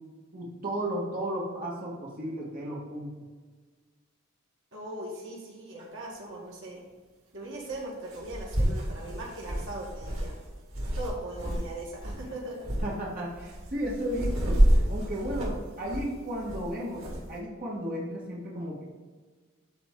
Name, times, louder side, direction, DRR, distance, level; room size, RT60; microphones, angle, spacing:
voice 1, 0.3-3.1 12.1-12.3 12.8-14.6 14.9-18.8, equal, 45° right, -5 dB, 1.8 m, -34 dB
voice 2, 4.7-6.8 7.3-10.3 11.0-12.7, right 1 dB, 65° right, -3 dB, 1.9 m, -39 dB
sound 1, 5.8-5.9 7.7-7.8 8.1-11.7 11.9-12.2 12.6-12.9 13.4-17.2, equal, 85° right, 2.1 m, -28 dB
12.0 x 4.0 x 3.8 m, 1.4 s
head